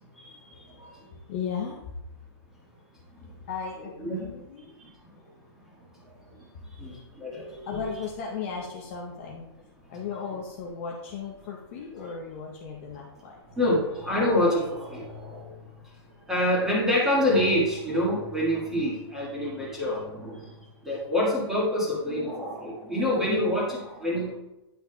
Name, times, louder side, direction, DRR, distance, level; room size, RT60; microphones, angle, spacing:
voice 1, 1.3-2.0 3.2-4.7 6.5-6.7 7.6-9.5 9.9-13.4, left 6 dB, 30° left, -1 dB, 0.7 m, -36 dB
voice 2, 6.8-7.8 13.5-15.5 16.3-20.5 20.8-24.3, left 1 dB, 5° right, -6 dB, 1.5 m, -26 dB
9.9 x 5.9 x 2.2 m, 0.96 s
hypercardioid pair, 170°, 14 cm